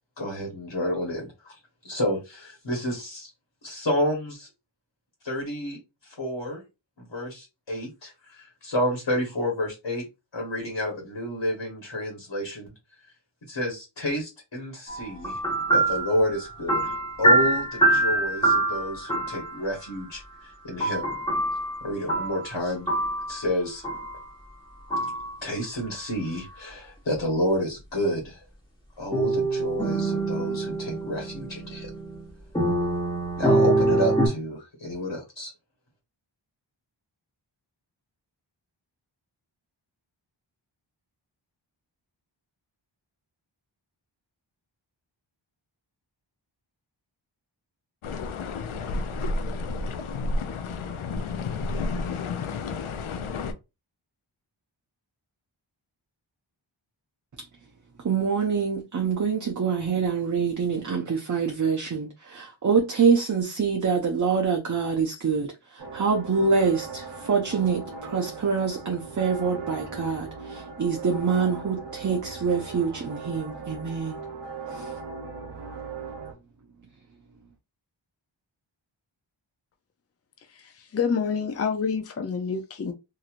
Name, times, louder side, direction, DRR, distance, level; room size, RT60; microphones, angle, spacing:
voice 1, 0.2-1.6 1.8-3.3 3.6-4.5 5.2-6.6 7.0-10.0 10.3-12.7 13.5-15.4 15.7-21.2 21.8-22.9 23.3-23.8 25.4-28.4 29.0-31.9 33.4-35.5, left 1 dB, 60° left, 1.3 m, -30 dB
sound 1, 14.9-19.6 20.8-22.5 22.9-23.4 23.8-24.2 24.9-25.3 29.1-32.2 32.5-34.3, right 2 dB, 10° left, 1.2 m, -25 dB
sound 2, 48.0-53.5, left 3 dB, 85° left, 0.5 m, -31 dB
voice 2, 58.0-74.2 74.7-74.9, right 5 dB, 40° right, 0.6 m, -25 dB
sound 3, 65.8-76.3, right 4 dB, 60° right, 1.0 m, -39 dB
voice 3, 80.6-82.9, left 6 dB, 30° left, 0.5 m, -28 dB
2.9 x 2.7 x 2.4 m
wide cardioid pair, 60°, 47 cm